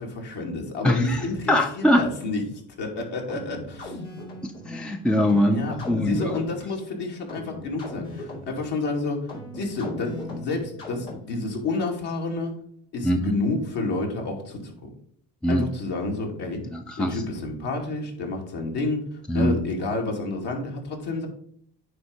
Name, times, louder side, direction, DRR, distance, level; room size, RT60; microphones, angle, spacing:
voice 1, 0.0-2.4 2.8-4.0 5.5-9.3 9.5-12.6 12.9-14.9 15.5-16.6 17.0-19.0 19.3-21.3, left 2 dB, 60° left, 0 dB, 2.4 m, -30 dB
voice 2, 0.8-2.0 4.4-6.4 13.0-13.3 15.4-15.7 16.7-17.2 19.3-19.6, left 1 dB, ahead, 5 dB, 0.6 m, -23 dB
sound 1, 3.3-11.5, left 1 dB, 85° left, 2.7 m, -38 dB
9.4 x 3.5 x 5.0 m, 0.64 s
hypercardioid pair, 65°, 46 cm